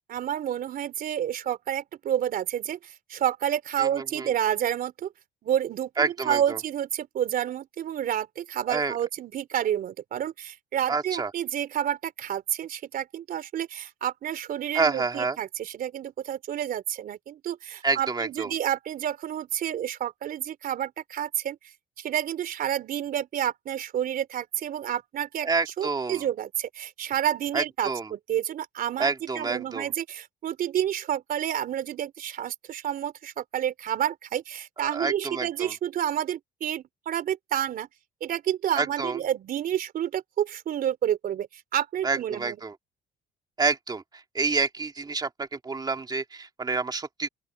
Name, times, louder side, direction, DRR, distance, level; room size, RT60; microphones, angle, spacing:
voice 1, 0.1-5.1 5.4-21.6 22.0-25.5 25.8-29.1 29.4-37.9 38.2-42.6, right 10 dB, 60° right, 3.8 m, -29 dB
voice 2, 3.8-4.3 6.0-6.6 8.7-8.9 10.9-11.3 14.7-15.4 17.8-18.5 25.4-26.2 27.5-28.1 29.0-29.9 34.8-35.7 38.8-39.2 42.0-42.8 43.6-47.3, right 4 dB, 25° right, 2.5 m, -28 dB
open air
cardioid pair, 110°, 17 cm